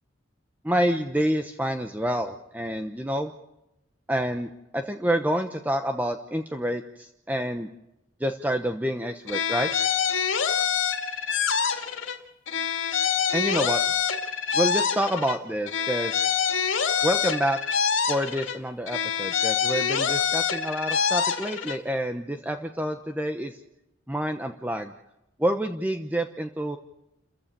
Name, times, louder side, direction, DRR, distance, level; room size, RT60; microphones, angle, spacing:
voice 1, 0.6-3.3 4.1-7.7 8.2-9.7 13.3-13.8 14.5-16.2 17.0-17.6 18.1-23.6 24.1-24.9 25.4-26.8, equal, 10° right, 6 dB, 0.9 m, -28 dB
sound 1, 9.3-12.2 12.5-15.4 15.7-18.6 18.9-21.8, left 7 dB, 75° left, 2.4 m, -26 dB
30.0 x 15.0 x 6.8 m, 0.89 s
head